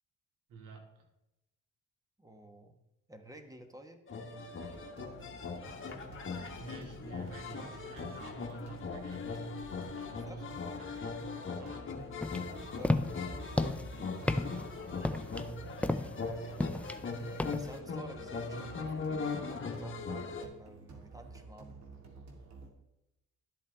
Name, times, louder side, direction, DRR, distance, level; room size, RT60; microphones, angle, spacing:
voice 1, 0.5-0.9 6.3-9.6 9.8-12.0 14.3-15.9 18.5-18.8, right 3 dB, 90° right, 1 dB, 2.3 m, -52 dB
voice 2, 2.2-2.8 3.1-4.0 10.0-10.4 12.6-13.0 16.3-16.5 17.6-18.9 19.7-21.8, right 1 dB, 10° right, 6 dB, 1.3 m, -52 dB
sound 1, 4.1-20.4, left 4 dB, 40° left, 1.5 m, -40 dB
sound 2, 4.6-22.7, right 3 dB, 65° right, 2.1 m, -52 dB
sound 3, 12.2-17.8, left 2 dB, 5° left, 0.5 m, -34 dB
12.5 x 8.2 x 3.5 m, 0.90 s
cardioid pair, 90°, 30 cm